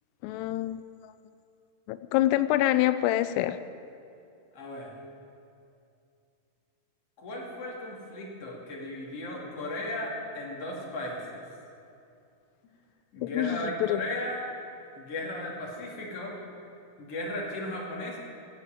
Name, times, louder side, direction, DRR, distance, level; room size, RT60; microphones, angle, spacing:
voice 1, 0.2-1.1 1.9-3.6 13.2-14.0, left 14 dB, 90° left, 12 dB, 2.7 m, -26 dB
voice 2, 4.5-4.9 7.2-11.3 13.1-14.4 14.9-16.3 17.0-18.2, left 1 dB, 40° left, -2 dB, 3.2 m, -36 dB
24.0 x 8.1 x 7.5 m, 2.6 s
omnidirectional pair, 4.7 m